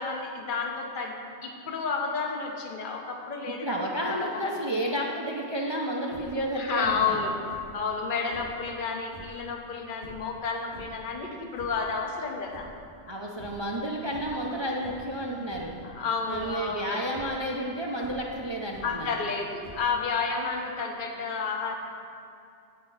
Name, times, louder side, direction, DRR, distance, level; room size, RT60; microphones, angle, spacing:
voice 1, 0.0-4.6 6.5-7.4 7.7-12.7 15.8-17.0 18.8-21.8, left 5 dB, 50° left, 2 dB, 1.0 m, -31 dB
voice 2, 3.6-7.2 13.1-15.8 16.3-19.1, right 1 dB, 30° right, -2 dB, 0.6 m, -31 dB
sound 1, 6.0-6.5 6.8-7.2 7.5-8.6 9.0-9.4 10.0-11.1 11.4-11.9 12.3-13.1 13.4-13.7 14.0-14.5 14.8-15.2 15.5-15.8 16.3-16.7 17.0-17.4 18.0-19.1 19.6-20.1, right 1 dB, 65° right, 1.7 m, -48 dB
10.0 x 4.3 x 7.3 m, 2.5 s
omnidirectional pair, 1.2 m